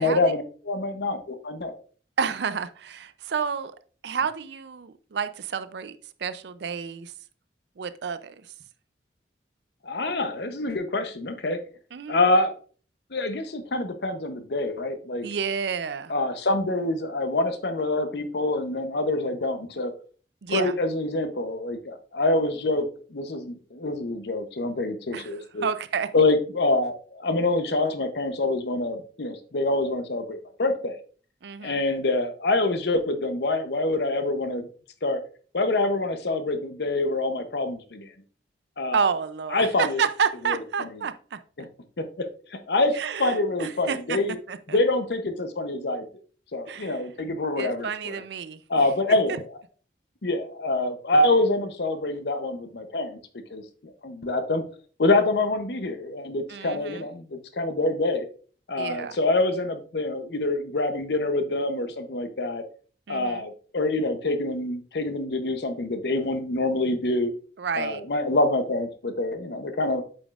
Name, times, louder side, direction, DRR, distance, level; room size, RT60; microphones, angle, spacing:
voice 1, 0.0-1.8 9.8-11.6 12.1-12.5 13.1-15.3 16.1-19.9 20.5-25.7 26.1-31.0 31.6-34.7 35.0-35.2 35.5-38.1 38.8-39.0 39.5-40.0 40.5-41.1 41.6-41.7 42.0-44.4 44.7-46.1 46.5-48.2 48.7-49.4 50.2-53.2 53.5-54.6 55.0-58.2 58.7-62.6 63.1-67.3 67.7-70.0, left 2 dB, 65° left, 9 dB, 0.7 m, -26 dB
voice 2, 2.2-3.7 4.0-7.1 7.8-8.3 11.9-12.2 15.2-16.1 20.4-20.8 25.1-25.3 25.6-26.1 31.4-31.8 38.9-41.4 43.0-44.2 44.5-44.8 46.7-47.0 47.6-48.6 56.5-57.1 58.8-59.2 63.1-63.4 67.6-68.0, right 6 dB, 70° right, 13 dB, 0.4 m, -30 dB
8.5 x 5.2 x 2.4 m, 0.42 s
head